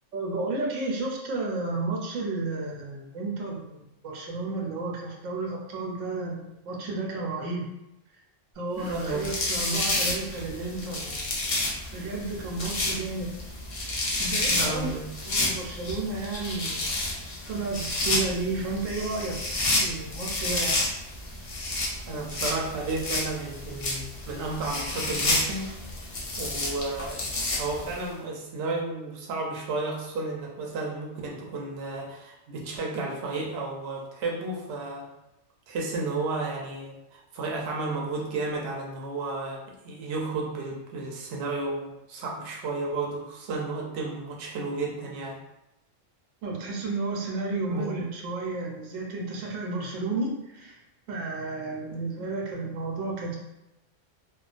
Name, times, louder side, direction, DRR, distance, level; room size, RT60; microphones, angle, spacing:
voice 1, 0.1-7.7 8.6-11.3 11.9-13.3 14.0-14.9 15.3-16.9 17.5-19.4 19.8-20.8 46.4-50.8 51.1-53.4, right 3 dB, 90° right, -1 dB, 1.0 m, -32 dB
voice 2, 8.8-9.3 14.6-15.1 22.1-26.1 26.4-27.2 27.5-35.1 35.7-45.4 47.7-47.9 52.2-52.3, right 3 dB, 65° right, -2 dB, 0.8 m, -32 dB
sound 1, 8.9-28.0, left 2 dB, 65° left, 0.3 m, -30 dB
2.3 x 2.2 x 2.4 m, 0.89 s
omnidirectional pair, 1.3 m